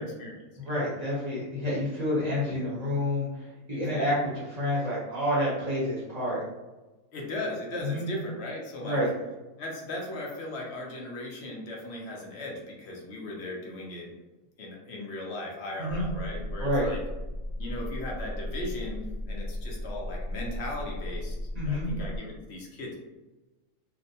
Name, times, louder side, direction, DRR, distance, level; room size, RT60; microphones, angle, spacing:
voice 1, 0.0-0.8 3.7-4.3 7.1-9.0 9.6-14.1 14.6-17.0 17.6-23.0, left 1 dB, 65° left, -2 dB, 0.8 m, -38 dB
voice 2, 0.6-4.1 4.6-6.4 7.8-8.0 8.8-9.1 15.8-16.0 16.6-16.9 21.5-21.9, left 1 dB, 40° right, -8 dB, 0.7 m, -29 dB
sound 1, 15.9-22.2, left 1 dB, 90° right, 1.0 m, -35 dB
2.5 x 2.1 x 2.7 m, 1.1 s
omnidirectional pair, 1.4 m